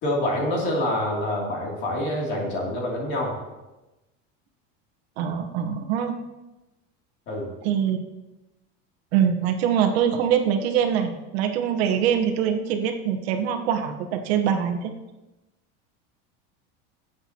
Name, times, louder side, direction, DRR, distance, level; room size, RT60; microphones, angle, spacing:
voice 1, 0.0-3.4 7.3-7.5, left 1 dB, 35° left, -2 dB, 2.7 m, -26 dB
voice 2, 5.2-6.2 7.6-8.0 9.1-14.9, right 8 dB, 75° right, 6 dB, 1.2 m, -23 dB
17.0 x 7.9 x 2.9 m, 1.0 s
cardioid pair, 180°, 32 cm